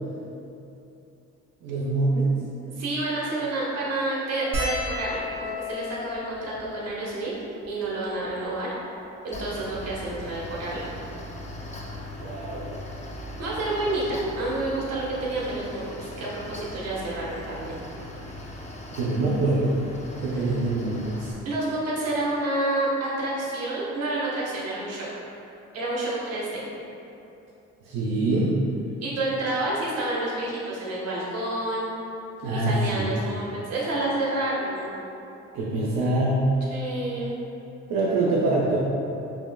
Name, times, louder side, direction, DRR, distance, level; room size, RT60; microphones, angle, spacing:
voice 1, 1.6-2.3 12.1-12.8 18.9-19.8 20.2-21.4 27.8-28.5 32.4-33.1 35.5-36.5 37.9-38.8, right 2 dB, 85° right, -6 dB, 0.6 m, -24 dB
voice 2, 2.7-7.3 7.7-8.7 9.2-10.9 13.4-17.7 21.4-25.1 25.7-26.6 29.0-31.9 32.5-34.9 36.7-37.3, right 2 dB, 55° right, -6 dB, 1.2 m, -29 dB
sound 1, 4.5-9.1 9.9-10.0 10.2-10.4 11.6-11.9 13.3-13.4 13.6-13.8, left 2 dB, 20° right, 1.4 m, -35 dB
Mechanical fan, 9.3-21.3, left 1 dB, 25° left, 0.5 m, -39 dB
5.3 x 2.8 x 2.2 m, 2.8 s
cardioid pair, 90°, 30 cm